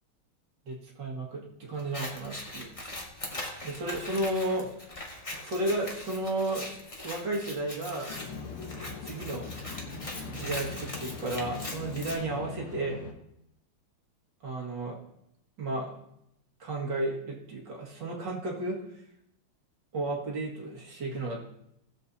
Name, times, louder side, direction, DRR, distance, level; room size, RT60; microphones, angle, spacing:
voice 1, 0.7-2.7 3.6-4.7 5.4-6.7 7.0-8.1 9.0-9.5 9.9-13.0 14.4-15.0 15.6-15.9 16.6-18.8 19.9-21.4, right 2 dB, 55° right, -3 dB, 2.5 m, -33 dB
Scissors, 1.8-12.2, left 1 dB, 20° left, 1.1 m, -41 dB
sound 1, 8.1-13.1, left 4 dB, 85° left, 2.1 m, -41 dB
18.0 x 7.3 x 2.8 m, 0.79 s
omnidirectional pair, 2.4 m